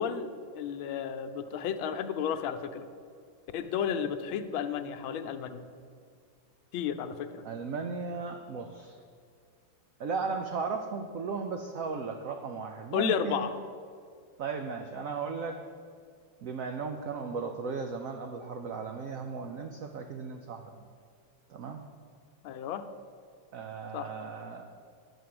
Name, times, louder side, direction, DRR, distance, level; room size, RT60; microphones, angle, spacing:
voice 1, 0.0-2.9 3.5-5.6 6.7-7.4 12.9-13.5 22.4-22.8 23.9-24.1, left 8 dB, 85° left, 9 dB, 1.5 m, -32 dB
voice 2, 7.4-9.0 10.0-13.5 14.4-15.6 16.4-20.8 21.5-21.8 23.5-24.7, right 5 dB, 85° right, 5 dB, 0.7 m, -36 dB
10.0 x 5.1 x 7.6 m, 2.2 s
omnidirectional pair, 2.2 m